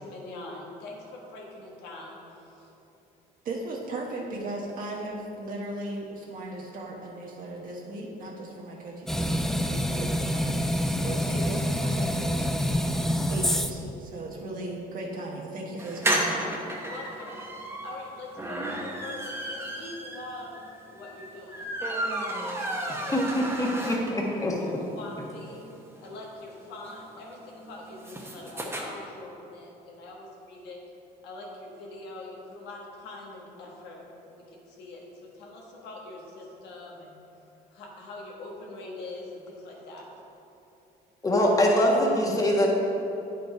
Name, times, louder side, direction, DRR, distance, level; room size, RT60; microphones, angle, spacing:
voice 1, 0.0-2.7 16.0-23.1 23.6-23.9 24.6-25.6 26.0-30.8 31.2-37.2 37.7-40.1, left 2 dB, 85° left, -1 dB, 1.5 m, -43 dB
voice 2, 3.4-12.8 13.3-16.4, right 2 dB, 55° right, -2 dB, 1.2 m, -37 dB
sound 1, 9.1-13.9, equal, ahead, 0.3 m, -27 dB
sound 2, 15.8-24.4 24.8-24.9 25.1-25.2 25.4-28.8, right 1 dB, 15° right, 1.1 m, -33 dB
voice 3, 23.1-24.6 41.2-42.7, left 1 dB, 20° left, -2 dB, 1.4 m, -23 dB
9.2 x 5.1 x 4.6 m, 2.9 s
cardioid pair, 110°, 17 cm